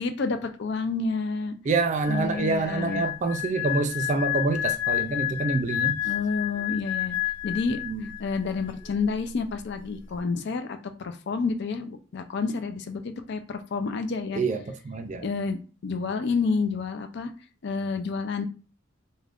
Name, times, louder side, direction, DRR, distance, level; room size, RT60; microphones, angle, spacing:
voice 1, 0.0-1.6 2.1-3.0 6.0-7.2 7.4-7.8 8.2-10.8 11.0-14.4 15.2-15.6 15.8-17.3 17.6-18.4, left 4 dB, 55° left, 0.4 m, -29 dB
voice 2, 1.6-6.0 7.7-8.1 14.3-15.3, right 3 dB, 35° right, 0.3 m, -27 dB
sound 1, 2.0-8.3 8.6-8.9, left 15 dB, 10° left, 1.1 m, -30 dB
2.4 x 2.2 x 3.4 m
head